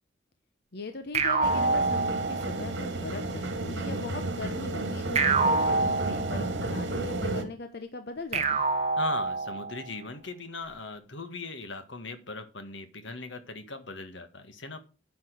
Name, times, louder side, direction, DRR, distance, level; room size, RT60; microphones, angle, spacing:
voice 1, 0.7-8.6, left 3 dB, 60° left, 7 dB, 1.0 m, -40 dB
sound 1, 1.1-2.8 5.2-6.7 8.3-9.8, right 3 dB, 35° right, 1.4 m, -27 dB
sound 2, 1.4-7.4, right 2 dB, 75° right, 2.4 m, -32 dB
voice 2, 8.9-14.8, left 3 dB, 85° left, 9 dB, 1.8 m, -39 dB
9.6 x 6.2 x 6.3 m, 0.33 s
head